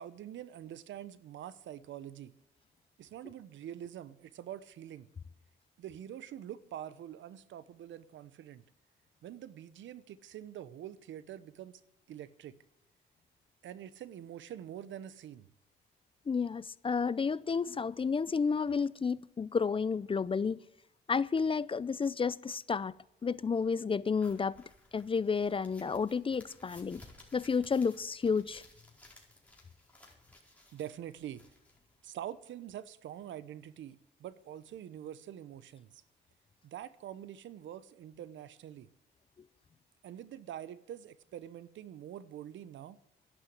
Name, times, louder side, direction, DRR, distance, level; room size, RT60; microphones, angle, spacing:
voice 1, 0.0-2.3 3.0-5.1 5.8-8.6 9.2-11.8 12.1-12.6 13.6-15.5 30.7-31.4 32.0-36.0 36.6-38.9 40.0-43.0, right 11 dB, 75° right, 0.9 m, -45 dB
voice 2, 16.3-20.6 21.1-22.9 23.2-24.5 24.9-27.0 27.3-28.6, left 5 dB, 25° left, 0.5 m, -31 dB
sound 1, 24.1-32.3, left 2 dB, 5° left, 4.5 m, -59 dB
11.5 x 11.0 x 7.9 m
cardioid pair, 90°, 20 cm